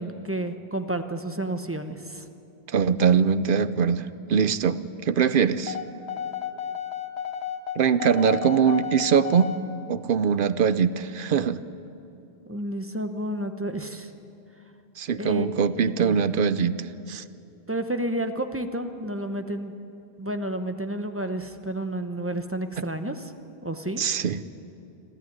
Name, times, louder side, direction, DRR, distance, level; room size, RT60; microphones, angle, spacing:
voice 1, 0.0-2.2 12.5-14.1 15.2-15.5 16.0-16.2 17.7-19.7 20.2-23.3 23.6-24.0, right 1 dB, 15° right, 7 dB, 1.0 m, -31 dB
voice 2, 2.7-5.8 7.8-9.5 9.9-11.6 15.0-17.2 24.0-24.4, right 7 dB, 60° right, 14 dB, 0.8 m, -22 dB
sound 1, 5.7-9.6, left 8 dB, 85° left, 1.2 m, -32 dB
25.5 x 14.0 x 9.5 m, 2.7 s
omnidirectional pair, 1.0 m